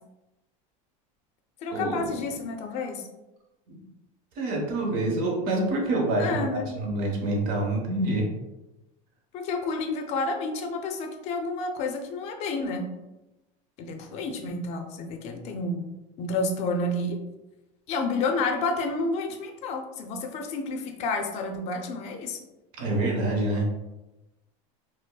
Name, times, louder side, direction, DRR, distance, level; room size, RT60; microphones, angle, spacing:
voice 1, 1.6-3.0 6.2-6.7 9.3-12.9 13.8-15.9 16.2-17.2 17.9-22.4, left 3 dB, 40° left, 4 dB, 0.5 m, -30 dB
voice 2, 4.4-8.3 22.8-23.7, right 2 dB, 60° right, 0 dB, 1.0 m, -26 dB
5.1 x 2.0 x 2.2 m, 1.0 s
cardioid pair, 155°, 17 cm